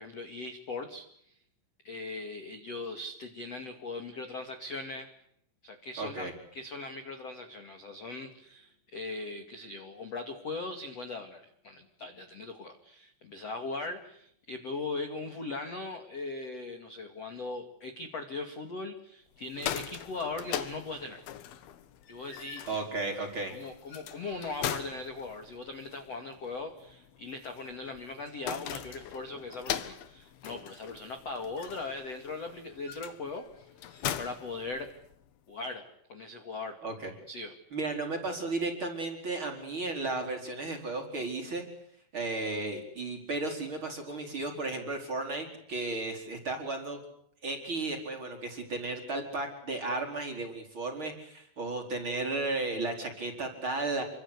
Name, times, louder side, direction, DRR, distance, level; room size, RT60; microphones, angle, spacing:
voice 1, 0.0-1.3 1.8-5.1 5.6-21.2 22.1-22.8 23.5-34.9 35.5-35.8 36.1-36.8 37.3-37.5, left 3 dB, 45° left, 6 dB, 2.3 m, -39 dB
voice 2, 6.0-6.3 22.7-23.5 36.8-37.1 37.7-41.6 42.1-47.0 47.4-54.0, right 2 dB, 25° right, 2 dB, 4.6 m, -34 dB
sound 1, 19.4-35.3, left 10 dB, 65° left, 2.6 m, -41 dB
29.5 x 24.5 x 8.3 m, 0.71 s
omnidirectional pair, 6.0 m